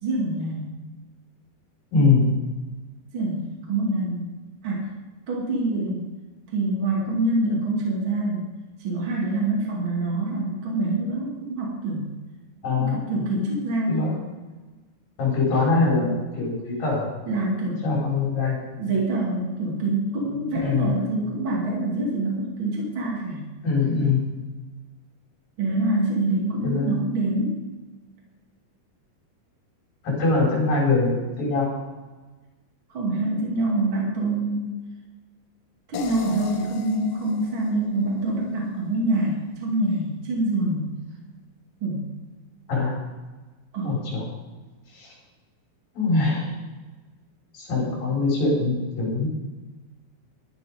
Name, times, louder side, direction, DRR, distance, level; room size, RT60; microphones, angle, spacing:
voice 1, 0.0-0.7 3.1-4.3 4.6-4.9 5.3-6.0 6.5-8.4 8.8-12.1 12.7-14.1 17.3-17.8 18.8-23.4 25.6-27.6 32.9-34.7 35.9-40.9 41.8-42.0 43.7-44.0, right 2 dB, 35° right, -4 dB, 2.8 m, -25 dB
voice 2, 1.9-2.3 12.6-13.0 13.9-14.2 15.2-17.1 17.8-18.6 20.6-21.0 23.6-24.3 26.6-26.9 30.0-31.7 42.7-43.0 43.8-44.2 44.9-45.1 45.9-46.5 47.5-49.3, left 3 dB, 65° left, -4 dB, 6.5 m, -23 dB
sound 1, 35.9-39.0, left 5 dB, 85° left, 2.9 m, -39 dB
12.5 x 10.5 x 5.1 m, 1.2 s
omnidirectional pair, 4.3 m